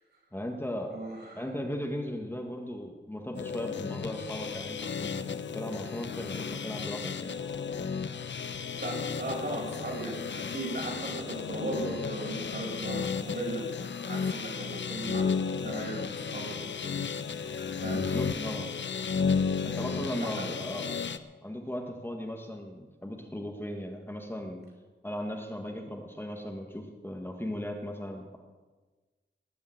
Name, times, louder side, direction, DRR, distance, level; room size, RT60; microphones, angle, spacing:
voice 1, 0.3-0.9 1.3-7.3 17.9-18.7 19.6-20.9 21.4-24.6 25.0-28.4, left 1 dB, 10° left, 2 dB, 1.5 m, -37 dB
voice 2, 0.9-1.4 8.8-13.6 14.1-15.3 15.6-17.0 17.8-18.0 19.6-19.8 20.2-20.5, right 2 dB, 55° right, -2 dB, 6.0 m, -37 dB
sound 1, 3.3-21.2, left 6 dB, 70° left, 0.8 m, -33 dB
19.0 x 7.0 x 8.9 m, 1.3 s
wide cardioid pair, 130°, 20 cm